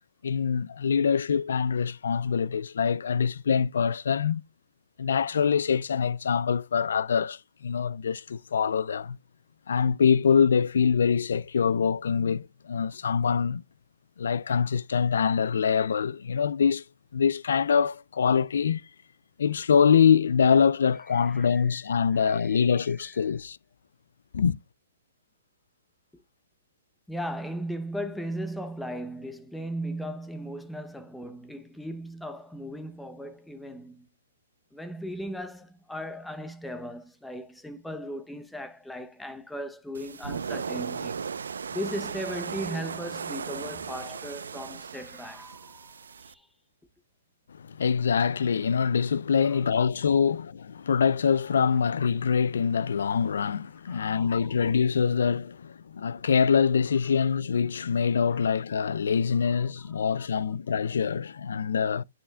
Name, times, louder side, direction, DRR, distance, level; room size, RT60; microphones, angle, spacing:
voice 1, 0.2-4.4 5.0-9.2 9.7-13.6 14.2-16.8 17.1-18.8 19.4-23.6 24.3-24.6 47.5-62.0, left 6 dB, 75° left, 0.4 m, -24 dB
voice 2, 21.2-21.8 22.1-23.1 27.1-34.1 34.7-41.3 41.7-46.5 49.4-49.6 53.9-54.5 58.3-58.4 59.5-59.6 59.9-60.3, equal, 5° left, 0.7 m, -37 dB
sound 1, 39.9-46.3, right 6 dB, 85° right, 0.6 m, -36 dB
12.5 x 4.4 x 2.3 m
hypercardioid pair, 150°, 0 cm